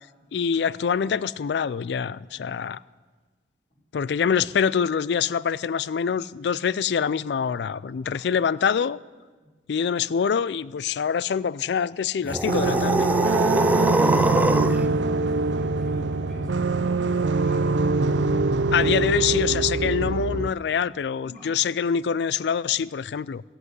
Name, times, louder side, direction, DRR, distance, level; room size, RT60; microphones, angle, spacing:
voice 1, 0.3-2.8 3.9-9.0 9.7-13.1 18.7-23.4, left 7 dB, 70° left, 0.4 m, -25 dB
sound 1, 12.2-14.9, right 1 dB, 10° right, 0.4 m, -23 dB
sound 2, 12.5-20.5, right 3 dB, 90° right, 0.6 m, -23 dB
voice 2, 13.4-18.2 21.2-21.7, left 1 dB, 45° left, 4.8 m, -44 dB
14.5 x 8.1 x 9.5 m
head